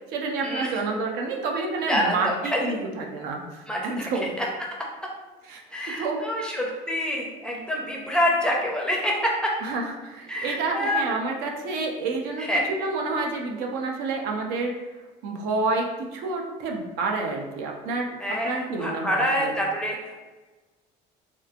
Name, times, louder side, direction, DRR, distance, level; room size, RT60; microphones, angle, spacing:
voice 1, 0.1-4.3 5.5-6.3 9.6-14.7 15.2-18.1 18.4-19.5, right 3 dB, 80° right, 1 dB, 0.6 m, -29 dB
voice 2, 1.9-2.7 3.7-4.1 4.4-4.5 5.7-9.5 10.3-11.1 12.4-12.6 18.2-20.1, equal, 5° left, -2 dB, 0.4 m, -26 dB
3.2 x 3.0 x 2.4 m, 1.2 s
cardioid pair, 155°, 16 cm